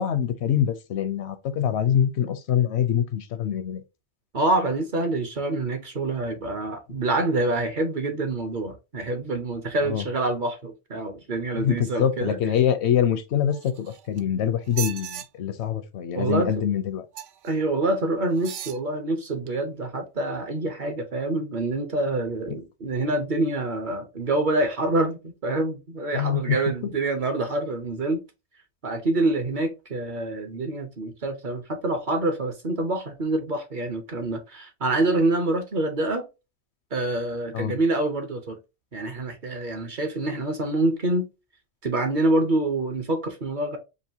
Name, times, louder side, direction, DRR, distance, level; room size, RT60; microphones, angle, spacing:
voice 1, 0.0-3.8 9.8-10.0 11.5-17.1 22.5-22.6 26.1-26.6 37.5-37.8, left 9 dB, 75° left, 0.8 m, -24 dB
voice 2, 4.3-12.4 16.1-16.5 17.4-28.2 28.8-36.3 36.9-38.6 38.9-41.3 41.8-43.8, right 2 dB, 50° right, 0.8 m, -26 dB
sound 1, 13.5-14.2 14.7-15.3 17.1-17.5 18.3-18.8 19.5-19.6, right 11 dB, 85° right, 0.9 m, -36 dB
5.3 x 2.5 x 2.7 m
omnidirectional pair, 1.2 m